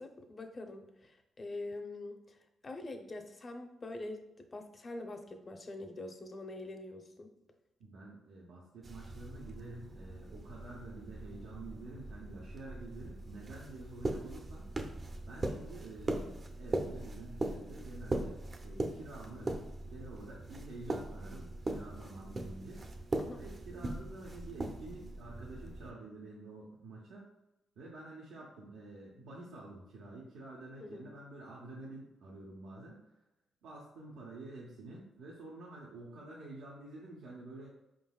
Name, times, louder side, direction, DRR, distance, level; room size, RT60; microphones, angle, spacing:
voice 1, 0.0-7.3 23.2-23.4 30.8-31.1, left 2 dB, 35° left, 5 dB, 0.6 m, -45 dB
voice 2, 7.8-14.7 15.2-19.5 19.8-22.8 23.3-27.3 27.8-33.1 33.6-37.7, right 2 dB, 85° right, -4 dB, 0.8 m, -49 dB
sound 1, 8.8-25.9, right 2 dB, 40° right, 0.6 m, -40 dB
4.8 x 3.8 x 2.3 m, 0.90 s
cardioid pair, 70°, 0 cm